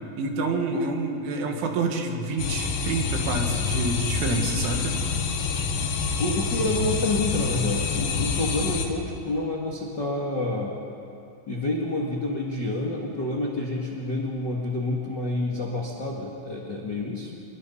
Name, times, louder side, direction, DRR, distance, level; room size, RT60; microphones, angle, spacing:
voice 1, 0.2-5.0, right 3 dB, 85° right, 3 dB, 4.4 m, -28 dB
sound 1, 2.4-8.9, left 5 dB, 80° left, 4.1 m, -27 dB
voice 2, 6.2-10.8 11.5-17.3, left 2 dB, 45° left, -3 dB, 1.4 m, -28 dB
26.0 x 22.5 x 5.6 m, 2.6 s
omnidirectional pair, 5.3 m